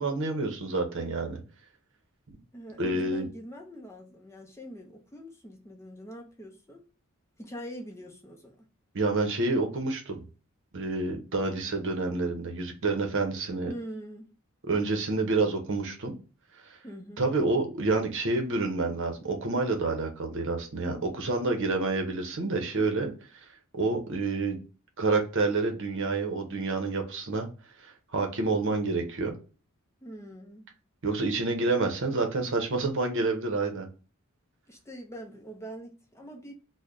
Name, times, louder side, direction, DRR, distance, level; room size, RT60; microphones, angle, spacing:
voice 1, 0.0-1.4 2.3-2.4 2.8-3.3 8.9-10.2 10.7-13.7 14.7-16.2 17.2-23.1 23.7-24.6 25.0-27.5 27.8-29.3 31.0-33.9, right 3 dB, 60° right, 0.8 m, -28 dB
voice 2, 2.5-6.8 7.4-8.6 13.6-14.3 16.8-17.3 30.0-30.7 34.7-36.5, equal, 15° left, 0.6 m, -43 dB
3.1 x 2.1 x 3.7 m
head